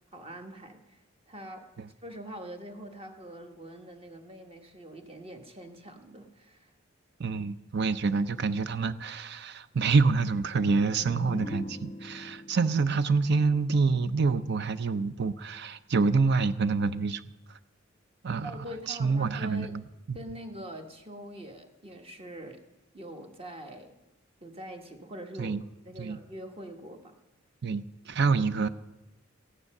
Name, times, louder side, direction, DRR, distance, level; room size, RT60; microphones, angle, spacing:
voice 1, 0.1-1.0 1.3-1.7 2.0-6.7 18.4-19.8 20.1-22.6 22.9-24.0 24.4-25.5 25.8-27.1, right 1 dB, 30° right, 5 dB, 1.4 m, -43 dB
voice 2, 7.2-17.2 17.5-17.6 18.2-19.8 20.1-20.2 25.4-25.6 26.0-26.2 27.6-28.7, right 4 dB, 55° right, 14 dB, 0.6 m, -27 dB
sound 1, 10.5-14.2, left 2 dB, 30° left, 0.5 m, -42 dB
14.5 x 9.8 x 6.5 m, 0.98 s
head